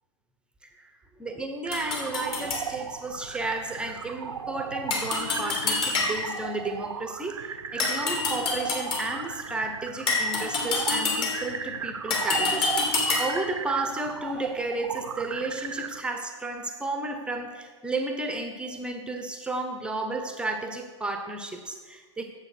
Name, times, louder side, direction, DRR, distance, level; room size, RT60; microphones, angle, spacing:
voice 1, 1.2-12.7 13.2-22.2, right 2 dB, 5° right, 5 dB, 0.9 m, -32 dB
sound 1, 1.6-16.0, right 7 dB, 75° right, 0.7 m, -36 dB
sound 2, 1.7-2.7 4.9-6.4 7.8-9.2 10.1-11.6 12.1-13.5, left 3 dB, 35° left, 2.6 m, -27 dB
9.7 x 7.5 x 6.0 m, 1.4 s
hypercardioid pair, 115°, 16 cm